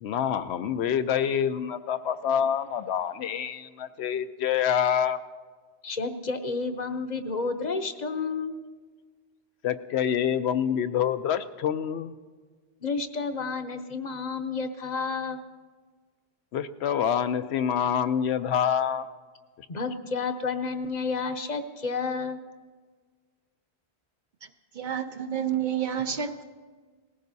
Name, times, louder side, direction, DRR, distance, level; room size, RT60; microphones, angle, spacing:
voice 1, 0.0-5.2 9.6-12.1 16.5-19.1, left 8 dB, 80° left, 11 dB, 0.9 m, -26 dB
voice 2, 5.8-8.6 12.8-15.4 19.7-22.4, left 4 dB, 45° left, 8 dB, 0.8 m, -31 dB
voice 3, 24.4-26.4, right 8 dB, 55° right, 8 dB, 0.7 m, -30 dB
19.0 x 15.0 x 2.7 m, 1.5 s
omnidirectional pair, 1.1 m